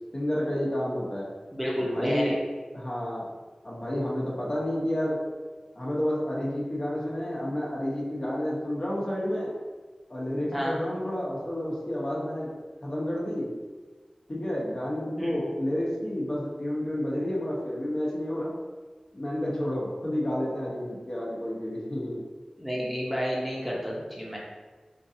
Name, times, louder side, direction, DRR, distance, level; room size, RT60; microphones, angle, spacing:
voice 1, 0.1-1.3 1.9-2.4 2.7-3.3 3.6-5.2 5.8-9.6 10.1-12.5 12.8-13.5 14.3-18.5 19.1-22.2, left 1 dB, 40° left, -5 dB, 1.0 m, -30 dB
voice 2, 1.5-2.3 10.5-10.8 15.2-15.4 22.6-24.4, equal, 5° right, -5 dB, 0.9 m, -30 dB
4.5 x 2.5 x 2.7 m, 1.3 s
wide cardioid pair, 50°, 2 cm